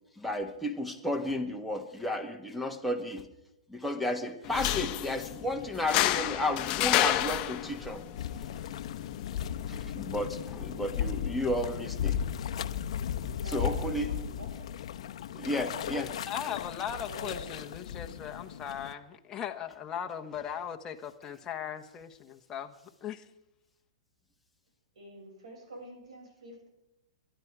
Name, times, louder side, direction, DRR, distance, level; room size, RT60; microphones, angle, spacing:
voice 1, 0.2-3.3 3.7-8.0 9.7-12.2 13.4-14.1 15.3-16.1, left 1 dB, ahead, 8 dB, 1.7 m, -33 dB
sound 1, 4.4-11.4, left 14 dB, 35° left, 1.0 m, -32 dB
sound 2, 8.2-18.9, left 9 dB, 65° left, 0.8 m, -36 dB
voice 2, 13.2-14.7 17.1-17.5 25.0-26.7, right 1 dB, 80° right, 1 dB, 7.1 m, -46 dB
voice 3, 16.3-23.2, left 9 dB, 20° left, 3 dB, 1.2 m, -38 dB
21.5 x 11.5 x 4.9 m, 0.89 s
hypercardioid pair, 135°, 3 cm